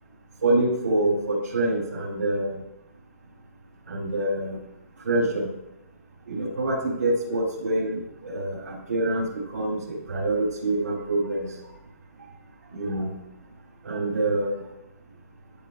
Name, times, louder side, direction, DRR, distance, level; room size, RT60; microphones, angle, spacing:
voice 1, 0.4-2.6 3.9-4.6 5.0-5.5 6.3-11.5 12.7-13.1 13.8-14.5, right 2 dB, 90° right, -6 dB, 3.0 m, -26 dB
12.5 x 7.1 x 2.4 m, 0.90 s
hypercardioid pair, 170°, 9 cm